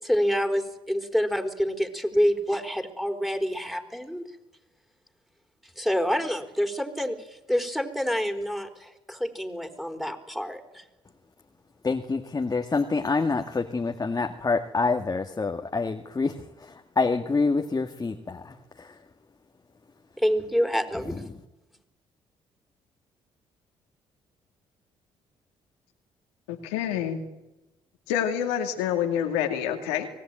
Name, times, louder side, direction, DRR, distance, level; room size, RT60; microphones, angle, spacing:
voice 1, 0.0-4.2 5.8-7.2 7.5-10.8 20.2-21.2, equal, ahead, 7 dB, 4.2 m, -27 dB
voice 2, 11.8-18.9, left 4 dB, 30° left, 5 dB, 1.8 m, -27 dB
voice 3, 26.5-27.2 28.1-30.1, left 9 dB, 90° left, 4 dB, 2.4 m, -27 dB
25.0 x 18.0 x 9.0 m, 0.97 s
hypercardioid pair, 55°, 13 cm